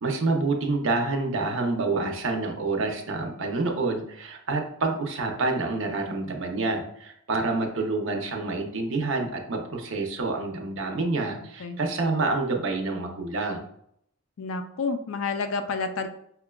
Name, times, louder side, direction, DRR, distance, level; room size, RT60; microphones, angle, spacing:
voice 1, 0.0-13.6, right 3 dB, 60° right, 3 dB, 0.6 m, -27 dB
voice 2, 14.4-16.1, left 4 dB, 60° left, 7 dB, 0.4 m, -29 dB
5.6 x 2.2 x 2.2 m, 0.71 s
head